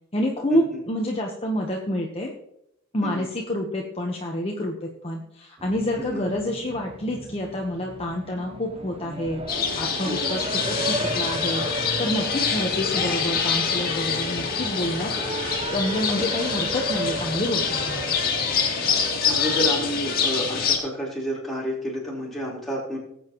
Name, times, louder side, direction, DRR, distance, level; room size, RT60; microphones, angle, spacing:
voice 1, 0.1-2.3 2.9-9.4 9.8-11.6 12.0-15.1 15.7-18.1, left 1 dB, 30° left, 0 dB, 1.1 m, -28 dB
Race car auto racing, 5.6-19.7, right 1 dB, 30° right, 0.8 m, -34 dB
sound 1, 9.5-20.8, left 6 dB, 50° left, 2.0 m, -26 dB
sound 2, 9.7-18.3, left 3 dB, 70° left, 2.0 m, -42 dB
voice 2, 10.0-10.4 19.3-23.0, equal, ahead, -6 dB, 4.0 m, -30 dB
19.0 x 8.1 x 3.0 m, 0.76 s
head